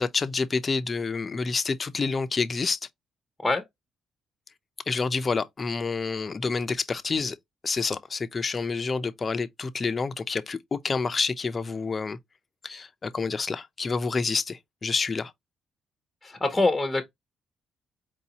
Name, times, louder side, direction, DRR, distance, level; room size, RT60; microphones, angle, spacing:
voice 1, 0.0-2.8 4.9-7.4 7.6-12.2 12.6-15.3, left 4 dB, 35° left, 0.6 m, -28 dB
voice 2, 16.2-17.0, left 2 dB, 10° left, 1.0 m, -24 dB
4.7 x 2.7 x 2.9 m
cardioid pair, 90°, 0 cm